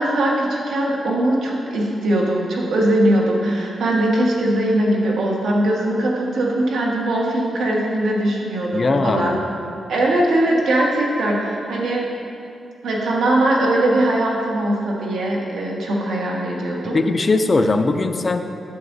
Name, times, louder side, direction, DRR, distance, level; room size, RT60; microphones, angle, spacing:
voice 1, 0.0-9.4 9.9-12.0 12.8-17.0, right 1 dB, 85° right, -3 dB, 1.4 m, -20 dB
voice 2, 8.7-9.4 16.9-18.4, left 3 dB, 30° left, 7 dB, 0.4 m, -19 dB
11.0 x 8.3 x 2.7 m, 2.6 s
wide cardioid pair, 165°, 0 cm